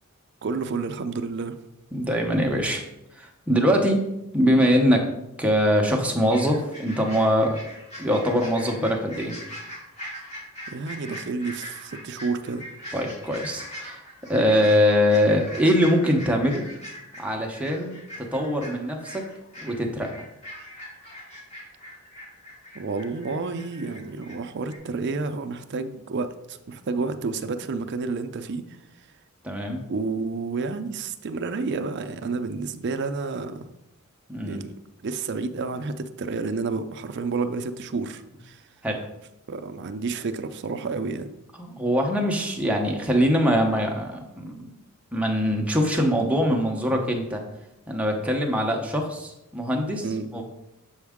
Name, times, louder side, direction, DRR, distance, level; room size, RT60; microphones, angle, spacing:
voice 1, 0.4-1.6 10.7-12.7 22.7-28.6 29.9-33.7 34.5-34.7 35.0-38.6 39.5-41.3 50.0-50.3, right 4 dB, 50° right, 9 dB, 0.4 m, -30 dB
voice 2, 1.9-2.8 3.1-4.0 4.3-5.1 5.4-7.6 8.0-9.4 12.9-14.0 14.3-16.7 17.2-19.3 19.6-20.1 29.4-29.8 34.3-34.6 38.8-39.0 41.6-44.7 45.1-47.4 47.9-50.1 50.3-50.4, equal, 5° right, 1 dB, 0.7 m, -23 dB
sound 1, 6.3-24.4 24.6-24.8, equal, 30° left, 2.1 m, -41 dB
7.1 x 4.6 x 3.6 m, 0.89 s
head